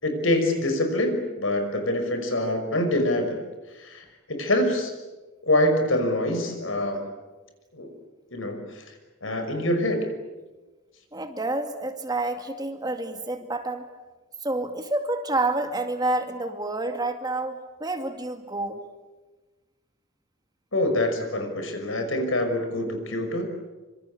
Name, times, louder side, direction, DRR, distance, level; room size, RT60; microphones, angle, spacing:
voice 1, 0.0-3.4 3.7-5.0 5.4-7.1 7.7-7.9 8.3-8.9 9.2-10.1 20.7-23.5, left 1 dB, 75° left, 6 dB, 5.8 m, -25 dB
voice 2, 11.1-13.8 14.4-18.8, right 2 dB, 20° right, 6 dB, 2.3 m, -28 dB
26.0 x 26.0 x 8.6 m, 1.2 s
head